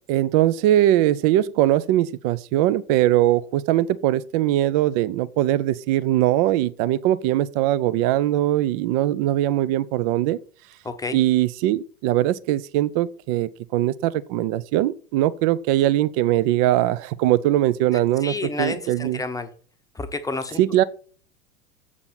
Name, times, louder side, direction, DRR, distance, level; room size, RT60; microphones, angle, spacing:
voice 1, 0.1-10.4 11.1-19.2 20.6-20.8, right 14 dB, 25° right, 0.4 m, -21 dB
voice 2, 10.8-11.2 17.9-19.5 19.9-20.6, left 3 dB, 10° left, 0.8 m, -30 dB
7.7 x 6.0 x 5.8 m
figure-of-eight pair, 90°, 45 cm